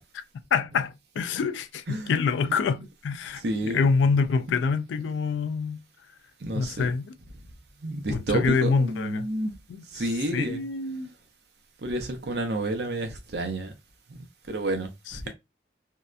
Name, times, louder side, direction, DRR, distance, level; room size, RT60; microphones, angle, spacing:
voice 1, 0.5-5.8 6.5-7.1 8.1-9.3 9.7-11.1 15.1-15.3, left 5 dB, 90° left, 0.3 m, -26 dB
voice 2, 3.4-3.9 6.4-6.9 7.8-9.5 9.9-10.6 11.8-13.7 14.1-15.2, right 1 dB, 65° right, 0.6 m, -30 dB
2.7 x 2.1 x 2.3 m
head